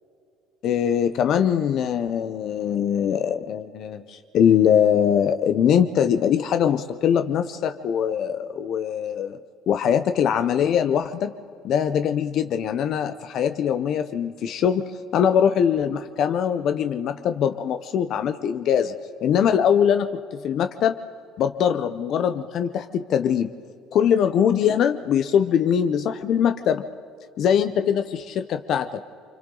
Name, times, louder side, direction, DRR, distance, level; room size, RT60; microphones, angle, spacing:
voice 1, 0.6-9.4 9.7-11.3 11.6-18.9 19.2-20.9 21.4-23.5 23.9-26.8 27.4-29.0, left 8 dB, 45° left, 9 dB, 0.7 m, -22 dB
29.0 x 26.0 x 3.9 m, 2.4 s
cardioid pair, 165°, 0 cm